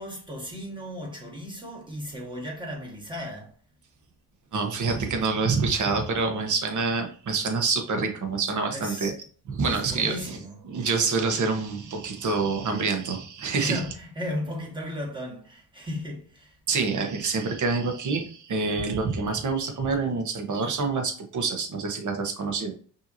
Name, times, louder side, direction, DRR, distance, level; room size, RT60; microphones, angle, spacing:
voice 1, 0.0-3.5 8.7-9.1 9.6-10.5 13.6-16.5, left 1 dB, 10° right, 1.5 m, -35 dB
voice 2, 4.5-9.2 9.5-10.4 10.6-13.8 16.7-22.7, right 4 dB, 45° right, 1.1 m, -27 dB
5.4 x 3.0 x 2.7 m
cardioid pair, 95°, 42 cm